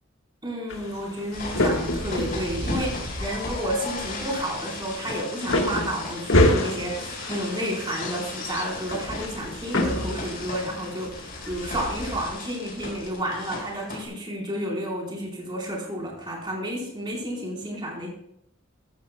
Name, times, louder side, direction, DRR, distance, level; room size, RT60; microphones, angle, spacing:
voice 1, 0.4-18.1, equal, 25° right, -2 dB, 3.9 m, -31 dB
sound 1, 0.7-12.2, left 1 dB, 85° left, 1.5 m, -29 dB
sound 2, 1.3-14.1, left 2 dB, 50° left, 4.7 m, -35 dB
14.0 x 14.0 x 2.2 m, 0.74 s
head